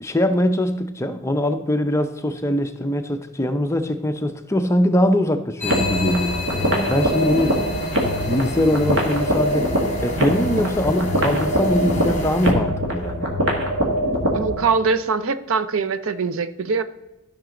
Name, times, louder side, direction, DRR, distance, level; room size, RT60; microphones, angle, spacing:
voice 1, 0.0-7.6 8.3-9.7 10.0-13.3, left 1 dB, 15° left, 7 dB, 0.5 m, -22 dB
sound 1, 5.6-12.5, left 3 dB, 30° left, 1.5 m, -30 dB
sound 2, 5.6-14.6, equal, 55° right, 1.8 m, -23 dB
voice 2, 14.3-16.8, right 4 dB, 75° right, 13 dB, 0.6 m, -22 dB
13.0 x 5.9 x 3.8 m, 0.98 s
head